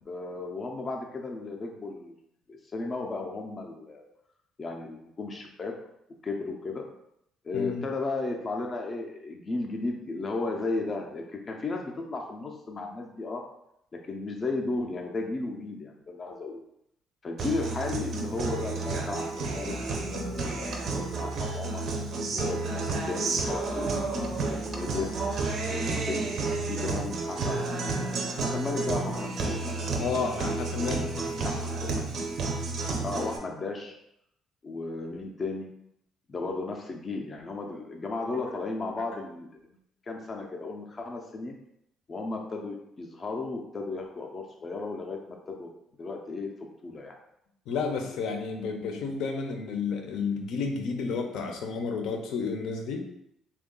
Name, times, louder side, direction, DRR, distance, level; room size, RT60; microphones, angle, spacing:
voice 1, 0.1-2.2 2.5-4.0 4.6-5.7 6.2-6.8 7.4-13.4 13.9-16.7 17.2-21.8 22.3-24.0 24.5-25.1 25.7-26.3 26.6-29.9 30.8-32.1 33.0-34.0 34.6-35.7 36.3-39.8 40.1-41.5 42.1-45.2 45.5-45.7 46.0-46.5 46.8-47.1 49.1-49.2, left 3 dB, 25° left, 1 dB, 0.4 m, -35 dB
voice 2, 7.5-7.8 30.0-31.2 47.7-53.1, left 5 dB, 70° left, 4 dB, 0.6 m, -31 dB
Guitar, 17.4-33.4, right 3 dB, 45° right, 0.5 m, -31 dB
3.5 x 2.3 x 3.7 m, 0.77 s
cardioid pair, 165°, 0 cm